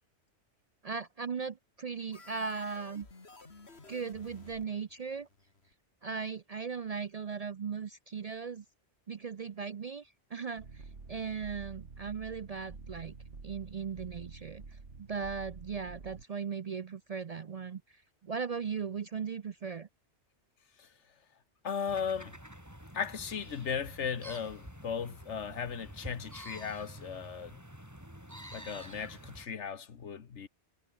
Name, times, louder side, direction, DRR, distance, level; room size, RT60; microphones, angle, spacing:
voice 1, 0.8-3.1 3.9-5.3 6.0-8.6 9.1-10.6 11.1-13.1 13.4-14.6 15.0-17.8 18.2-19.9, right 5 dB, 50° right, 0.5 m, -38 dB
sound 1, 2.1-5.7, left 3 dB, 65° left, 3.0 m, -54 dB
sound 2, 10.6-16.2, right 4 dB, 80° right, 2.7 m, -48 dB
voice 2, 21.6-22.4 22.9-27.6 28.5-30.5, left 7 dB, 85° left, 1.6 m, -37 dB
sound 3, 21.9-29.5, equal, 15° right, 7.9 m, -48 dB
omnidirectional pair, 1.2 m